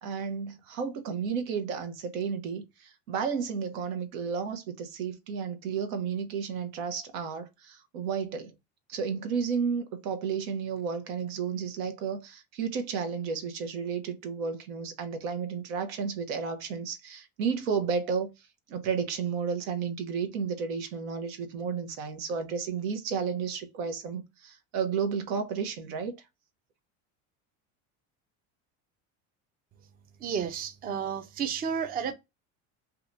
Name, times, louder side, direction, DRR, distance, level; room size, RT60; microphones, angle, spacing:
voice 1, 0.0-8.5 8.9-18.3 18.7-26.1, right 6 dB, 85° right, 0.9 m, -32 dB
voice 2, 30.2-32.1, right 7 dB, 25° right, 0.4 m, -31 dB
2.8 x 2.3 x 3.8 m
supercardioid pair, 105°, 39 cm